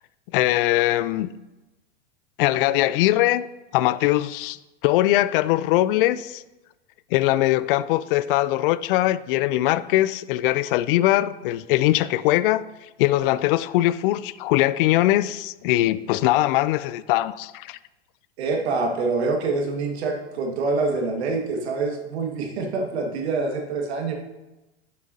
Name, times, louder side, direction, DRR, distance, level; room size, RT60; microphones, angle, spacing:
voice 1, 0.3-1.3 2.4-3.4 3.7-6.4 7.1-12.7 13.0-17.8, left 15 dB, 55° left, 0.4 m, -21 dB
voice 2, 18.4-24.1, right 3 dB, 70° right, 1.8 m, -26 dB
11.0 x 7.2 x 2.7 m
hypercardioid pair, 105°, 33 cm